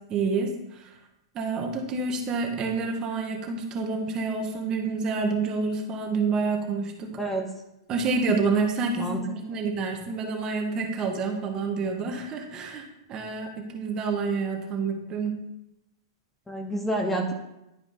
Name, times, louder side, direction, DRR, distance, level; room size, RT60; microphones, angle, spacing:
voice 1, 0.1-1.0 1.3-7.1 7.9-15.4, right 4 dB, 30° right, 3 dB, 1.1 m, -28 dB
voice 2, 16.5-17.3, right 1 dB, 5° left, 1 dB, 0.8 m, -28 dB
11.0 x 4.9 x 2.6 m, 0.89 s
figure-of-eight pair, 105°, 2 cm